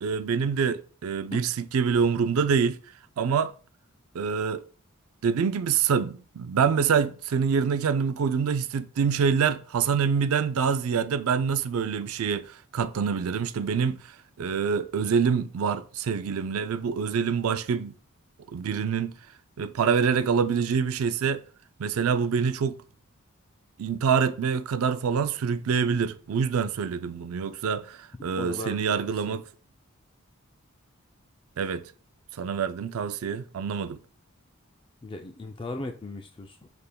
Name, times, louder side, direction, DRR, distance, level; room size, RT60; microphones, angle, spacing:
voice 1, 0.0-2.8 3.2-3.5 4.1-4.6 5.2-14.0 14.4-17.9 18.5-19.1 19.6-21.4 21.8-22.8 23.8-29.4 31.6-31.8 32.4-34.0, right 6 dB, 80° right, 0.4 m, -26 dB
voice 2, 28.4-28.9 29.2-29.4 35.0-36.7, left 2 dB, 25° left, 0.3 m, -37 dB
6.6 x 3.5 x 2.2 m
head